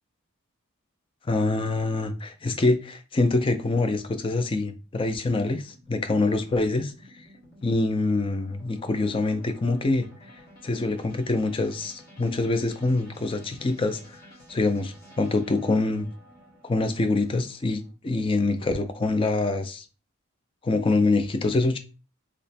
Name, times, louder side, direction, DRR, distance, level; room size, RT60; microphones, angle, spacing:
voice 1, 1.3-6.9 7.6-10.1 10.6-14.0 14.5-16.1 16.6-19.8 20.6-21.8, left 2 dB, 25° left, 0.3 m, -25 dB
sound 1, 4.8-17.9, equal, 45° left, 1.4 m, -52 dB
3.0 x 2.1 x 4.1 m
head